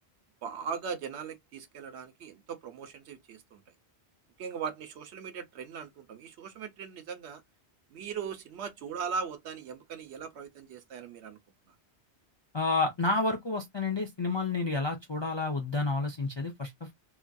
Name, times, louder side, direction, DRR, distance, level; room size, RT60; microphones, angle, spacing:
voice 1, 0.4-3.6 4.4-7.4 7.9-11.4 11.7-11.8, right 6 dB, 80° right, 0.9 m, -39 dB
voice 2, 12.5-16.9, left 3 dB, 45° left, 0.3 m, -30 dB
2.8 x 2.5 x 2.2 m
omnidirectional pair, 1.1 m